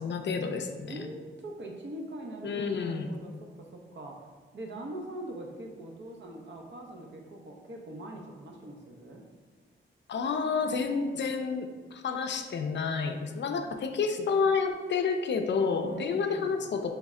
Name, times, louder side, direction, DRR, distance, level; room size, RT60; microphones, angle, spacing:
voice 1, 0.0-1.0 2.4-3.1 10.1-16.9, left 5 dB, 60° left, 5 dB, 0.4 m, -30 dB
voice 2, 0.9-4.3 4.5-9.2 15.8-16.6, right 1 dB, 60° right, 1 dB, 0.7 m, -42 dB
3.5 x 3.1 x 3.6 m, 1.4 s
cardioid pair, 80°, 21 cm